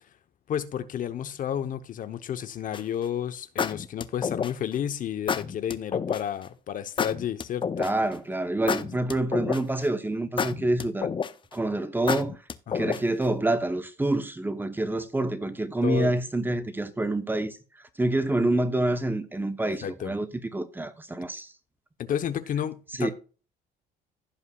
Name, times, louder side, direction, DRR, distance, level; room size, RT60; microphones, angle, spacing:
voice 1, 0.5-7.9 12.7-12.9 15.8-16.1 19.8-20.1 22.0-23.1, left 9 dB, 55° left, 0.9 m, -31 dB
sound 1, 2.7-3.0 3.6-4.7 5.3-6.2 7.0-8.1 8.7-9.8 10.4-11.5 12.1-13.2, left 6 dB, 30° left, 0.7 m, -29 dB
voice 2, 7.8-11.1 11.5-12.4 12.7-17.6 18.0-20.3 20.5-21.5 23.0-23.1, right 2 dB, 10° right, 1.0 m, -27 dB
16.0 x 5.6 x 2.4 m
cardioid pair, 110°, 17 cm